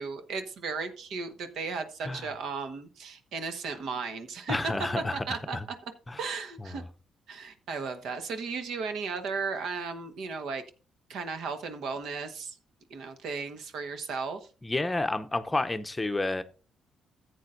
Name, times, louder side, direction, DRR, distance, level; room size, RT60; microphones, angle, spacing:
voice 1, 0.0-4.7 5.1-5.6 6.2-6.8 7.3-10.6 11.1-12.6 12.9-14.5, right 4 dB, 75° right, 1.3 m, -35 dB
voice 2, 4.5-5.3 5.5-5.7 6.1-6.2 6.6-6.8 14.6-16.4, left 2 dB, 15° left, 0.7 m, -30 dB
14.0 x 8.3 x 2.6 m
cardioid pair, 90°, 0 cm